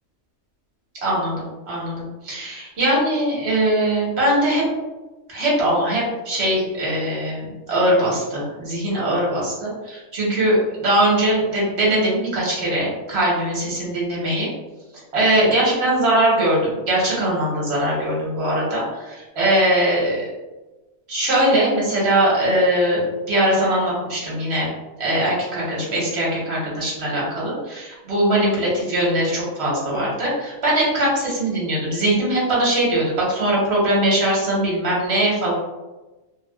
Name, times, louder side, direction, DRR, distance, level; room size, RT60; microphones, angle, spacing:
voice 1, 1.0-4.6 5.3-14.5 15.1-20.2 21.1-23.0 23.3-24.7 25.0-35.5, right 1 dB, 55° right, -5 dB, 1.3 m, -21 dB
3.3 x 2.3 x 2.3 m, 1.1 s
omnidirectional pair, 1.4 m